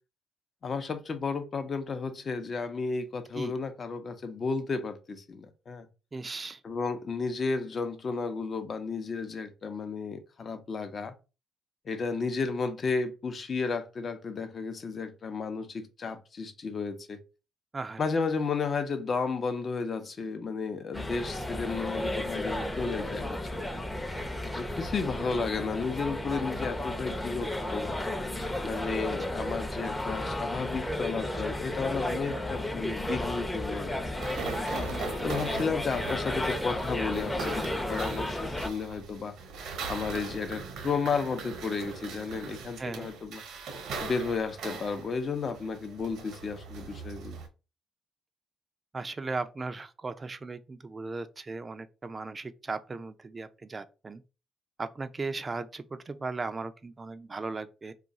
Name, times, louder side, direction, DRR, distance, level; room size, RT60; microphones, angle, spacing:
voice 1, 0.6-5.9 6.6-11.1 11.9-17.2 18.0-23.7 24.6-27.9 28.6-34.0 35.2-39.4 39.9-43.4 44.0-47.4, left 4 dB, 50° left, 0.7 m, -33 dB
voice 2, 6.1-6.6 17.7-18.0 42.8-43.1 48.9-54.2 54.8-57.9, right 3 dB, 30° right, 0.4 m, -37 dB
sound 1, 20.9-38.7, left 1 dB, 15° left, 0.6 m, -33 dB
sound 2, 34.2-47.5, right 4 dB, 80° right, 0.7 m, -40 dB
2.4 x 2.3 x 4.0 m
supercardioid pair, 65°, 0 cm